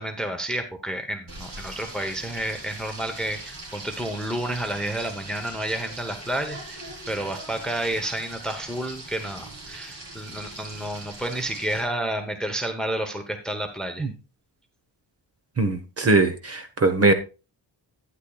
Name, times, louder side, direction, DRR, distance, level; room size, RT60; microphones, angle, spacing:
voice 1, 0.0-6.8 7.1-14.1, right 1 dB, ahead, 0.9 m, -30 dB
Frying (food), 1.3-11.8, right 2 dB, 75° right, 4.2 m, -41 dB
voice 2, 15.6-17.1, right 3 dB, 35° right, 1.2 m, -21 dB
12.0 x 9.8 x 2.3 m
wide cardioid pair, 175°, 44 cm